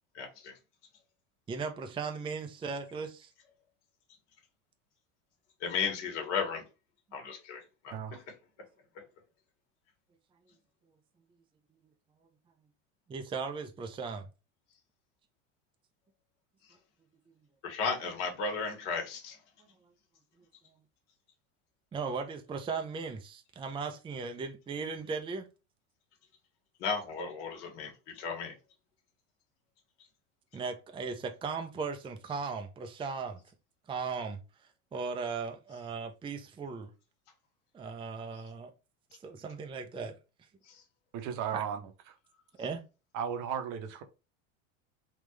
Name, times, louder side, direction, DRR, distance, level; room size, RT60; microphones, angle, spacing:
voice 1, 0.1-0.5 5.6-6.6 7.1-8.2 17.6-19.4 26.8-28.5 40.7-40.8, left 5 dB, 65° left, 1.5 m, -35 dB
voice 2, 1.5-3.3 11.7-11.8 13.1-14.3 21.9-25.5 30.5-33.4 33.9-34.4 34.9-36.9 37.7-38.7 39.2-40.2 41.5-41.6 42.6-42.9, right 5 dB, 15° right, 0.5 m, -37 dB
voice 3, 41.1-41.8 43.1-44.0, right 8 dB, 50° right, 0.9 m, -35 dB
3.7 x 2.4 x 3.1 m
hypercardioid pair, 95°, 39 cm